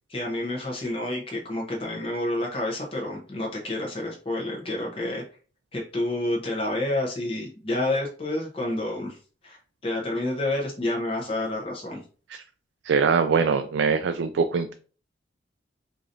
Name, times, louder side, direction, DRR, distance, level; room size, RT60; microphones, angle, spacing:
voice 1, 0.1-5.2 5.7-9.2 9.4-12.0, left 1 dB, 30° left, -2 dB, 0.7 m, -29 dB
voice 2, 12.9-14.7, right 5 dB, 75° right, 8 dB, 0.3 m, -23 dB
4.8 x 2.6 x 2.6 m, 0.39 s
head